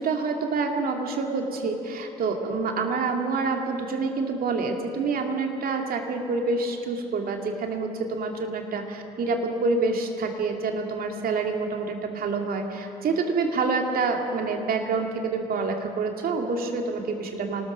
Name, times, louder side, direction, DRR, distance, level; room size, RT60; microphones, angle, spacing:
voice 1, 0.0-17.7, right 4 dB, 55° right, 3 dB, 2.6 m, -27 dB
26.5 x 19.5 x 5.2 m, 2.9 s
figure-of-eight pair, 45°, 19 cm